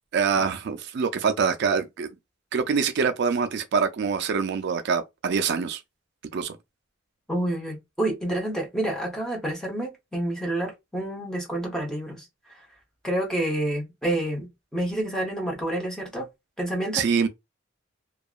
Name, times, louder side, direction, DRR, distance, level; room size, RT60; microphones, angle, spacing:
voice 1, 0.1-2.1 2.5-5.8 6.3-6.6 16.9-17.3, right 5 dB, 60° right, 0.4 m, -25 dB
voice 2, 7.3-12.2 13.0-16.3 16.6-17.1, right 1 dB, 5° left, 0.7 m, -28 dB
2.7 x 2.2 x 2.3 m
head